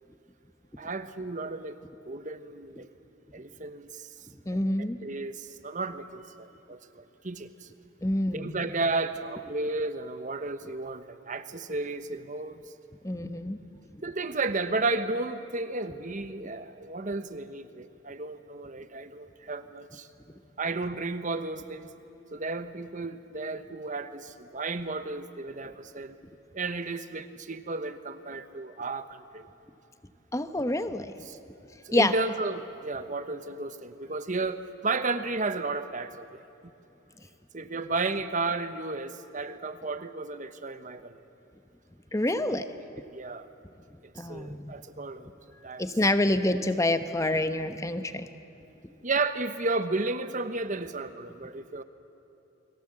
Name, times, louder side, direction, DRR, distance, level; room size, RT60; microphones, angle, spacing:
voice 1, 0.8-1.8 2.0-2.9 3.3-4.1 4.8-7.7 8.3-12.6 14.0-20.1 20.6-21.9 22.3-26.2 26.5-29.5 31.3-31.4 31.8-36.4 37.5-41.2 42.4-42.6 43.0-43.5 44.2-45.3 45.6-45.9 46.8-46.9 49.0-51.8, right 3 dB, 40° right, 10 dB, 1.1 m, -33 dB
voice 2, 4.5-5.0 8.0-8.6 13.0-13.6 30.3-31.1 31.9-32.1 42.1-42.6 44.1-44.7 45.8-48.3, left 1 dB, 15° left, 10 dB, 1.0 m, -27 dB
29.5 x 21.5 x 7.7 m, 3.0 s
head